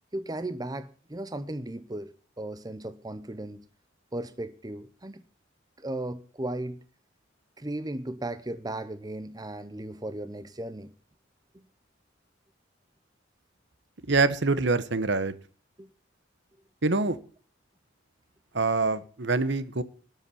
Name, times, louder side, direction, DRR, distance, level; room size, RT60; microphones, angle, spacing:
voice 1, 0.1-3.7 4.1-5.2 5.8-6.8 7.6-10.9 11.5-11.6 15.8-15.9, right 1 dB, 20° right, 0.8 m, -36 dB
voice 2, 14.1-15.3 16.8-17.2 18.5-19.8, right 3 dB, 60° right, 1.1 m, -25 dB
12.5 x 7.4 x 9.9 m
head